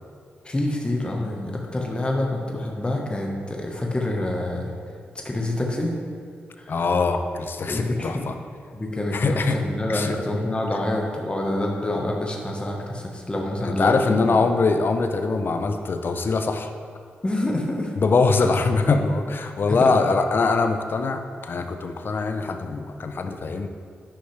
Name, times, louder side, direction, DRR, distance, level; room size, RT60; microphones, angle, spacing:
voice 1, 0.4-4.7 5.2-6.0 6.6-6.7 7.7-8.2 8.7-14.5 17.2-17.9 19.7-19.9, left 1 dB, 25° left, 0 dB, 1.2 m, -27 dB
voice 2, 6.7-8.3 9.1-9.6 9.9-10.1 13.6-16.7 18.0-23.7, left 4 dB, 55° left, 7 dB, 0.6 m, -22 dB
10.0 x 5.5 x 3.3 m, 2.2 s
supercardioid pair, 50°, 4 cm